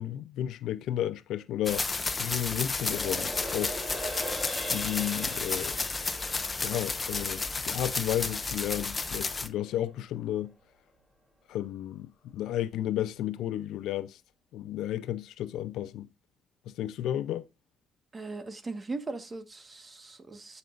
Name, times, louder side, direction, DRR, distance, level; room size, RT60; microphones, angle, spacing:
voice 1, 0.0-1.9 2.2-3.8 4.7-5.8 6.6-10.6 11.5-14.2 14.5-16.1 16.7-17.5, left 12 dB, 85° left, 0.5 m, -33 dB
sound 1, 1.6-9.5, left 3 dB, 25° left, 0.9 m, -32 dB
sound 2, 2.8-9.4 9.8-9.9, right 1 dB, 10° right, 3.4 m, -41 dB
voice 2, 18.1-20.6, right 3 dB, 30° right, 1.4 m, -39 dB
14.5 x 5.4 x 2.5 m
cardioid pair, 90°, 0 cm